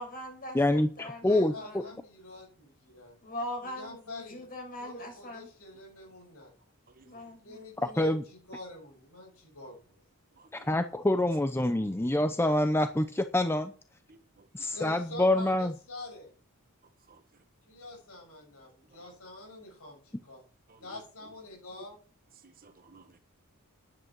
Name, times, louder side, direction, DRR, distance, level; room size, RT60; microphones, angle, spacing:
voice 1, 0.0-2.0 3.2-5.5 7.0-7.6, left 1 dB, 40° left, 6.8 m, -41 dB
voice 2, 0.5-1.8 8.0-8.2 10.5-13.7 14.5-15.7, left 1 dB, 10° left, 0.6 m, -26 dB
voice 3, 1.2-3.2 3.6-4.4 4.8-6.5 7.4-10.0 14.6-16.3 17.7-20.4 20.8-22.0, left 2 dB, 75° left, 7.4 m, -46 dB
voice 4, 6.9-7.3 10.3-10.7 11.8-11.9 14.1-14.7 17.1-17.2 20.7-21.0 22.4-23.2, right 3 dB, 40° right, 1.4 m, -57 dB
10.5 x 9.3 x 6.1 m
head